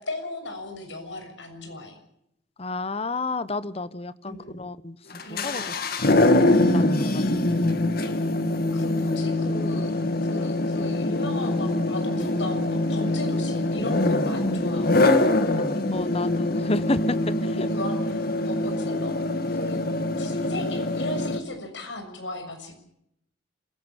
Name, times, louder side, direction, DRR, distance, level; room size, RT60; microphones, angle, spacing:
voice 1, 0.0-2.0 4.3-4.6 5.2-5.7 8.0-8.3 8.7-9.9 10.2-15.4 17.7-19.1 19.4-19.8 20.2-22.8, left 2 dB, 80° left, 6 dB, 6.8 m, -36 dB
voice 2, 2.6-5.0 5.3-5.7 6.1-7.7 15.9-17.7, left 2 dB, 35° left, 15 dB, 0.9 m, -31 dB
sound 1, 5.1-21.4, left 2 dB, 55° left, 2.1 m, -24 dB
27.0 x 17.0 x 7.2 m, 0.75 s
head